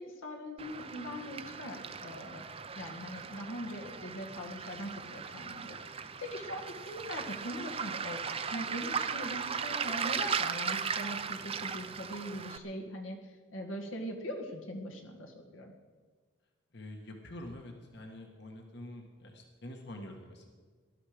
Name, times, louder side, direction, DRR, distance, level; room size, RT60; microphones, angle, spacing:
voice 1, 0.0-2.4 2.8-15.7, equal, 75° left, 2 dB, 1.8 m, -41 dB
Waves surf, 0.6-12.6, right 6 dB, 30° right, 0.6 m, -37 dB
voice 2, 16.7-20.5, left 1 dB, 55° left, 2 dB, 1.6 m, -46 dB
19.0 x 12.0 x 5.1 m, 1.5 s
head